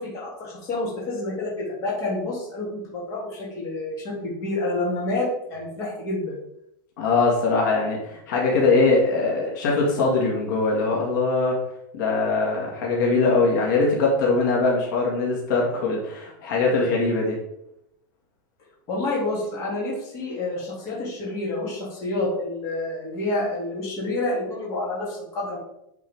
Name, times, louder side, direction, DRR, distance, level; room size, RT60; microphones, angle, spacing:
voice 1, 0.0-6.4 18.9-25.6, left 2 dB, 30° left, -4 dB, 2.7 m, -28 dB
voice 2, 7.0-11.6 11.9-17.4, left 3 dB, 65° left, -2 dB, 2.1 m, -22 dB
9.4 x 4.5 x 3.6 m, 0.80 s
supercardioid pair, 165°, 11 cm